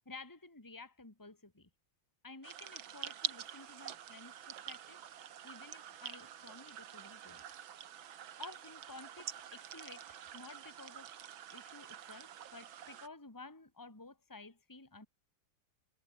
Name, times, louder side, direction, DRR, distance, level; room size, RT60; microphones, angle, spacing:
voice 1, 0.0-1.7 2.2-5.0 5.4-7.4 8.4-11.1 11.5-15.1, left 3 dB, 10° left, 2.7 m, -53 dB
sound 1, 2.4-13.1, right 10 dB, 85° right, 2.1 m, -46 dB
omnidirectional pair, 2.1 m